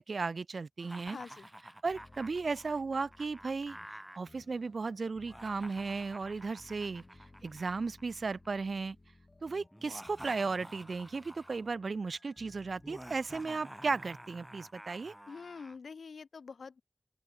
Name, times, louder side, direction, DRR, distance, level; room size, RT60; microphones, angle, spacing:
voice 1, 0.0-1.2 1.8-3.8 4.2-7.0 7.4-9.0 9.4-15.1, right 4 dB, 65° right, 0.4 m, -35 dB
Laughter, 0.8-4.2 5.2-8.5 9.7-11.7 12.8-15.8, right 1 dB, 10° right, 5.1 m, -51 dB
voice 2, 1.1-1.5 15.3-16.8, left 5 dB, 90° left, 0.5 m, -46 dB
sound 1, 1.9-13.4, left 2 dB, 40° left, 3.0 m, -60 dB
open air
wide cardioid pair, 65°, 0 cm